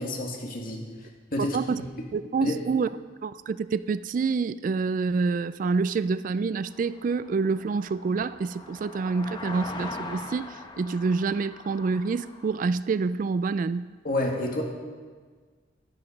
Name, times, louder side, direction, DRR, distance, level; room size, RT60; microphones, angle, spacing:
voice 1, 0.0-1.9 2.4-2.5 14.0-14.6, left 1 dB, 50° left, 2.2 m, -30 dB
voice 2, 1.4-1.8 2.1-2.9 3.2-13.9, right 4 dB, 45° right, 0.3 m, -27 dB
sound 1, 6.7-12.6, left 2 dB, 25° left, 1.0 m, -41 dB
12.5 x 12.0 x 5.2 m
head